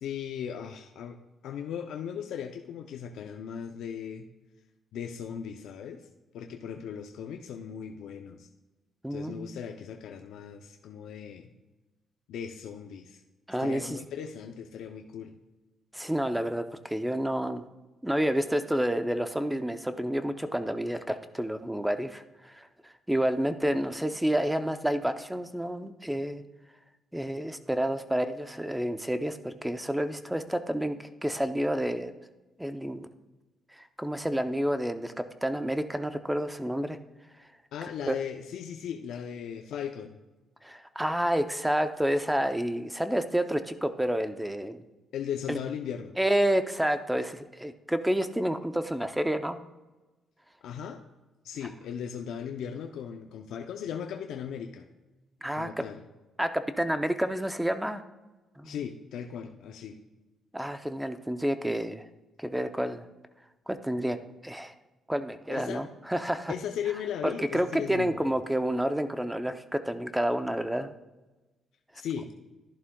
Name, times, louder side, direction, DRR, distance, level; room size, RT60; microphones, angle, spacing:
voice 1, 0.0-1.2 1.4-4.3 4.9-6.0 6.3-8.5 9.1-11.5 12.3-13.2 13.6-15.4 37.7-40.2 45.1-46.1 50.6-51.0 51.4-54.9 55.5-56.0 58.6-60.0 65.5-65.8 66.5-68.3 72.0-72.3, left 8 dB, 80° left, 4 dB, 0.5 m, -37 dB
voice 2, 9.0-9.6 13.5-14.0 15.9-17.7 18.0-26.4 27.1-32.1 32.6-33.1 33.7-35.1 35.4-37.0 38.1-38.2 40.6-44.8 45.5-45.6 46.2-49.6 55.4-55.8 56.4-58.0 58.6-58.7 60.5-62.1 62.4-63.1 63.7-64.2 64.4-64.7 65.1-66.5 67.2-70.9, right 1 dB, 5° right, 9 dB, 0.6 m, -29 dB
11.5 x 11.0 x 2.3 m, 1.1 s
cardioid pair, 90°, 0 cm